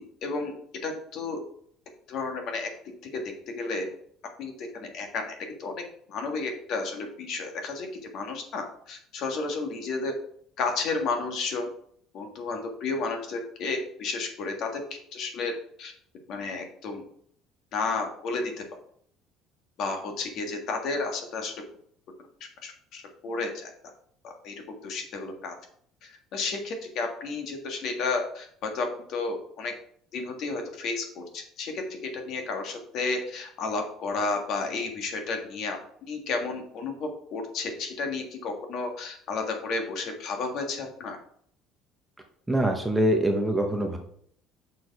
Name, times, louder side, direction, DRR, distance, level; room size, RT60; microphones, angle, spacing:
voice 1, 0.2-0.5 0.8-1.4 2.1-2.7 3.1-3.2 3.5-3.9 4.4-5.7 6.1-7.9 8.1-10.1 10.6-11.7 12.1-14.8 15.1-15.5 15.8-15.9 16.3-17.0 17.7-18.5 19.8-21.5 22.6-23.7 24.2-24.5 24.8-25.5 26.0-29.7 30.1-41.2, left 3 dB, 50° left, 4 dB, 1.6 m, -32 dB
voice 2, 42.5-44.0, right 1 dB, 5° right, 3 dB, 0.8 m, -24 dB
6.2 x 4.6 x 4.7 m, 0.63 s
cardioid pair, 160°, 0 cm